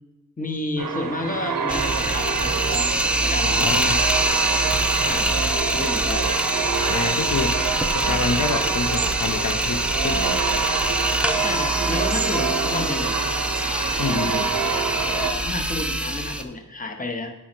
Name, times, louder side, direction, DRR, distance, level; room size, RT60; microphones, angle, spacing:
voice 1, 0.4-4.0 5.0-6.3 8.0-8.3 11.4-13.2 15.1-17.3, left 2 dB, 25° left, 4 dB, 0.7 m, -31 dB
sound 1, 0.8-15.3, right 6 dB, 85° right, 0.5 m, -27 dB
sound 2, 1.7-16.4, right 1 dB, 5° right, 0.3 m, -24 dB
voice 2, 3.4-4.0 6.7-7.6 7.9-10.4 14.0-14.5, left 4 dB, 65° left, 5 dB, 0.5 m, -27 dB
8.5 x 3.8 x 4.4 m, 1.0 s
wide cardioid pair, 60°, 33 cm